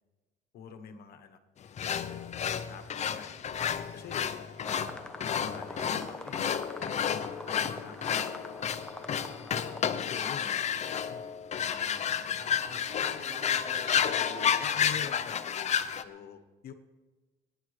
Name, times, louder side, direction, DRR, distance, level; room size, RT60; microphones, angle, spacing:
voice 1, 0.5-1.7 2.7-4.5 5.1-8.9 9.2-9.5 10.1-11.2 11.8-12.8 14.6-15.8 16.0-16.7, left 7 dB, 65° left, 6 dB, 1.2 m, -47 dB
sound 1, 1.8-16.0, left 8 dB, 45° left, 0.7 m, -31 dB
sound 2, 4.6-9.8, left 1 dB, 5° left, 0.9 m, -44 dB
voice 2, 12.3-14.9, right 2 dB, 45° right, -1 dB, 4.9 m, -47 dB
22.0 x 10.0 x 3.3 m, 1.2 s
cardioid pair, 110°, 17 cm